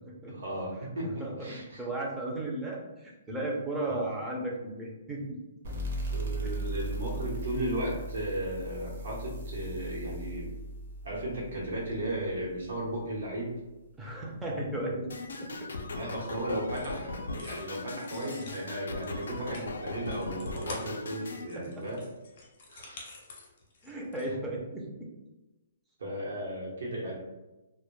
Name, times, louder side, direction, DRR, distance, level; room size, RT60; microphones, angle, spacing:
voice 1, 0.3-1.8 3.9-4.0 6.1-10.5 11.0-13.6 15.9-22.0 22.7-23.0 26.0-27.2, right 1 dB, 85° right, -4 dB, 0.9 m, -35 dB
voice 2, 1.2-5.4 6.4-6.6 14.0-15.1 15.4-15.7 21.6-21.7 23.8-25.1, right 1 dB, 5° right, -3 dB, 0.4 m, -35 dB
sound 1, 5.6-12.9, right 1 dB, 55° right, 0.7 m, -38 dB
sound 2, 15.1-21.5, left 2 dB, 85° left, 0.3 m, -38 dB
sound 3, 16.7-17.0 17.4-24.3, left 3 dB, 45° left, 0.6 m, -48 dB
2.1 x 2.1 x 3.0 m, 1.1 s
hypercardioid pair, 165°, 0 cm